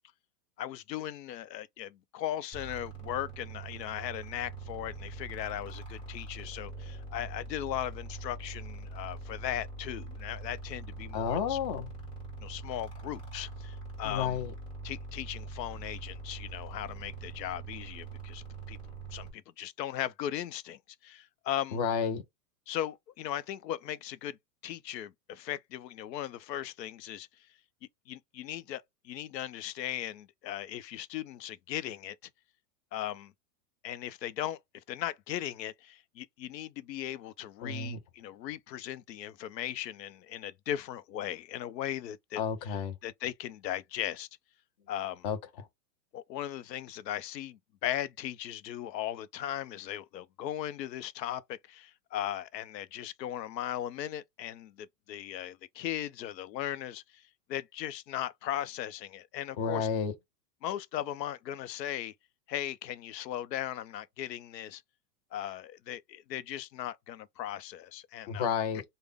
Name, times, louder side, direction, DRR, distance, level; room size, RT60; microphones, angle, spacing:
voice 1, 0.6-11.6 12.4-14.4 14.8-18.8 19.1-21.8 22.7-24.4 24.6-27.3 28.1-32.2 32.9-33.3 33.8-42.8 43.0-44.3 44.9-45.3 46.1-57.2 57.5-59.9 60.6-62.1 62.5-64.8 65.3-68.5, left 12 dB, 90° left, 0.6 m, -38 dB
sound 1, 2.5-19.3, right 3 dB, 10° left, 1.6 m, -43 dB
voice 2, 11.1-11.9 14.0-14.5 21.7-22.2 37.6-38.0 42.4-42.9 45.2-45.4 59.6-60.1 68.3-68.8, left 7 dB, 25° left, 0.4 m, -31 dB
3.5 x 2.1 x 3.4 m
supercardioid pair, 150°, 49 cm